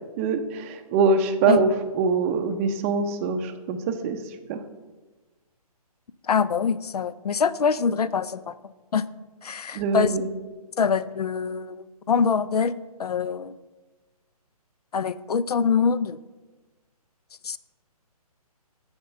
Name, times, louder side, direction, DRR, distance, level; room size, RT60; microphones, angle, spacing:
voice 1, 0.2-1.7 1.9-4.2 4.5-4.6 9.7-10.2, right 4 dB, 20° right, 7 dB, 0.6 m, -23 dB
voice 2, 6.2-9.0 9.4-10.2 10.8-12.7 13.0-13.6 14.9-16.2 17.4-17.6, left 6 dB, 75° left, 17 dB, 0.5 m, -24 dB
10.5 x 4.4 x 6.6 m, 1.2 s
hypercardioid pair, 145°, 20 cm